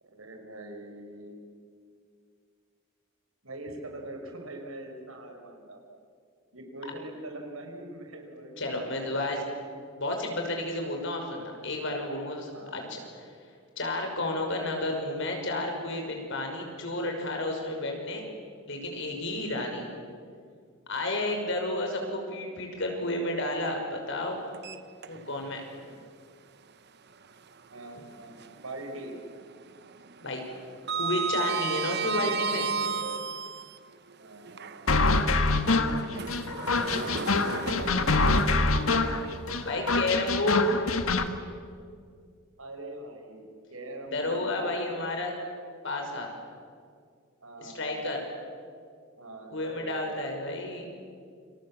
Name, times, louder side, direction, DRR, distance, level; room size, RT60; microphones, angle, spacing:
voice 1, 0.0-1.4 3.4-6.0 6.5-9.5 12.5-12.9 19.4-19.6 21.0-21.4 27.7-29.2 34.2-35.1 37.0-38.9 42.6-43.4 43.7-45.0 47.4-48.1 49.2-50.0, right 1 dB, 85° right, 3 dB, 5.4 m, -43 dB
voice 2, 8.6-9.4 10.0-13.3 13.8-18.3 18.7-19.9 20.9-24.4 25.1-25.6 30.2-30.4 30.9-32.7 39.6-40.8 44.1-45.3 45.8-46.3 47.6-48.2 49.5-50.9, left 1 dB, 60° left, 3 dB, 6.0 m, -31 dB
Sliding door, 24.5-25.5 25.9-26.0 27.7-28.8 29.1-29.4 29.7-33.8 34.5-39.7, right 5 dB, 55° right, 1.1 m, -34 dB
sound 1, 34.9-41.3, left 3 dB, 90° left, 1.8 m, -25 dB
29.0 x 27.0 x 7.5 m, 2.2 s
head